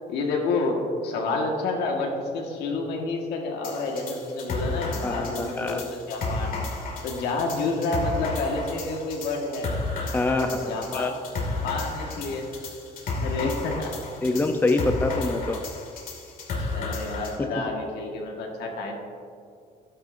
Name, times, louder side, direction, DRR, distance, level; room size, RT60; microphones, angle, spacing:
voice 1, 0.1-6.6 7.0-9.7 10.4-12.5 13.2-13.9 14.3-14.4 16.6-19.0, left 3 dB, 80° left, 1 dB, 1.6 m, -29 dB
sound 1, 3.6-17.4, left 3 dB, 55° left, 2.2 m, -32 dB
voice 2, 5.0-5.8 10.1-11.1 14.2-15.6, left 2 dB, 10° left, 5 dB, 0.6 m, -25 dB
11.5 x 9.6 x 2.6 m, 2.2 s
cardioid pair, 110°, 17 cm